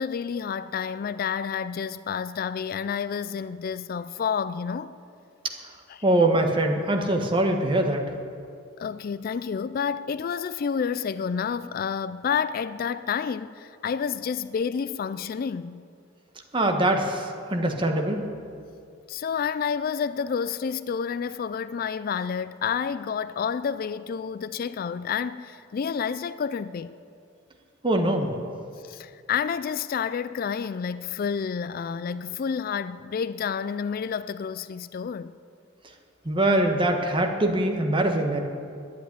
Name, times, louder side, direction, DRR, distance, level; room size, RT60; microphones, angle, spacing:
voice 1, 0.0-4.9 5.9-6.0 8.8-15.8 19.1-27.0 28.8-35.3, left 6 dB, 50° left, 0.3 m, -29 dB
voice 2, 6.0-8.1 16.5-18.2 27.8-28.3 36.2-38.4, right 1 dB, 25° right, 1.4 m, -23 dB
11.0 x 9.4 x 9.9 m
head